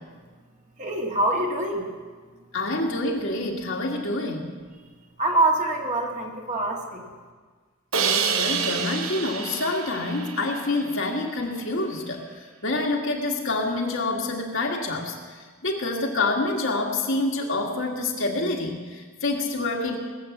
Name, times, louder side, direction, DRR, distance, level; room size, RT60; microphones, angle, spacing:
voice 1, 0.8-1.9 5.2-7.1, right 2 dB, 35° right, 0 dB, 2.0 m, -25 dB
voice 2, 2.5-4.5 8.0-20.0, left 2 dB, 60° left, 1 dB, 2.0 m, -27 dB
Crash cymbal, 7.9-11.0, right 6 dB, 65° right, 1.0 m, -28 dB
19.5 x 8.1 x 7.3 m, 1.5 s
head